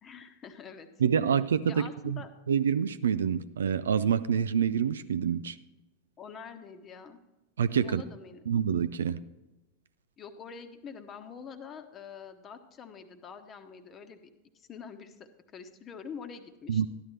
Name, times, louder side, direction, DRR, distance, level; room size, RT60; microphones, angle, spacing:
voice 1, 0.0-0.9 1.7-2.3 6.2-7.2 7.8-8.4 10.2-14.2 14.5-16.9, left 6 dB, 25° left, 1.1 m, -45 dB
voice 2, 1.0-2.2 2.5-5.6 7.6-8.0 8.5-9.2 16.7-16.9, right 7 dB, 65° right, 0.4 m, -27 dB
13.5 x 11.0 x 3.1 m
figure-of-eight pair, 90°, 0 cm